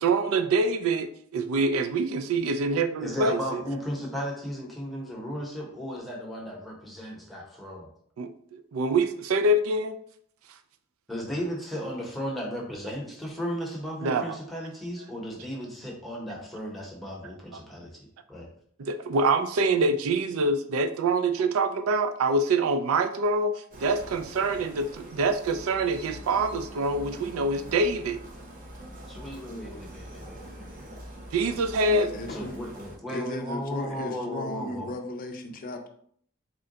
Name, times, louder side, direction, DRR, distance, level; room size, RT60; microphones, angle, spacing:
voice 1, 0.0-3.6 8.2-8.3 8.7-9.9 14.0-14.4 17.5-17.6 18.8-28.2 31.3-32.1, right 2 dB, 75° right, 10 dB, 0.4 m, -25 dB
voice 2, 3.0-7.9 11.1-17.9 18.3-18.5 29.1-31.0 32.3-34.9, equal, ahead, -2 dB, 0.8 m, -35 dB
sound 1, 23.7-33.0, right 1 dB, 40° right, 0.8 m, -44 dB
voice 3, 31.8-32.6 33.1-35.9, left 2 dB, 40° left, 5 dB, 0.4 m, -35 dB
3.6 x 2.2 x 3.8 m, 0.63 s
head